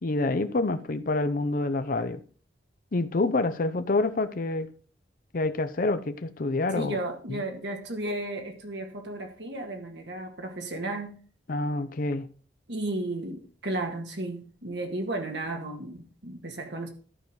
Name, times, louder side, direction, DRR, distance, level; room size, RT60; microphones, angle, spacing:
voice 1, 0.0-2.2 2.9-4.7 5.3-7.0 7.3-7.4 11.5-12.3, left 2 dB, 50° left, 0.6 m, -27 dB
voice 2, 6.7-11.2 12.7-16.9, right 2 dB, 70° right, 1.8 m, -34 dB
12.0 x 4.7 x 5.1 m
head